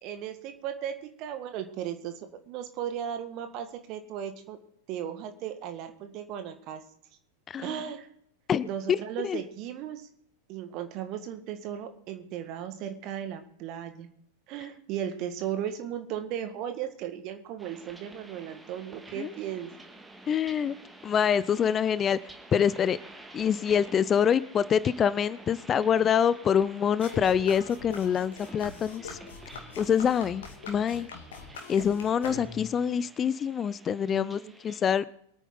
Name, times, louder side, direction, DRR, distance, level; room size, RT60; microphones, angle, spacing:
voice 1, 0.0-4.6 4.9-6.8 7.6-8.1 8.7-10.1 10.5-14.1 14.5-19.7 34.1-34.5, right 9 dB, 40° right, 8 dB, 1.8 m, -36 dB
voice 2, 7.5-7.8 8.5-9.4 19.2-19.3 20.3-20.8 21.0-22.2 22.5-23.0 23.3-29.2 29.5-31.1 31.7-35.1, left 8 dB, 25° left, 19 dB, 0.4 m, -26 dB
sound 1, 17.6-34.8, right 2 dB, 10° right, 1.7 m, -50 dB
sound 2, 27.0-32.8, left 4 dB, 60° left, 2.4 m, -43 dB
23.5 x 9.1 x 3.9 m, 0.69 s
figure-of-eight pair, 90°, 0 cm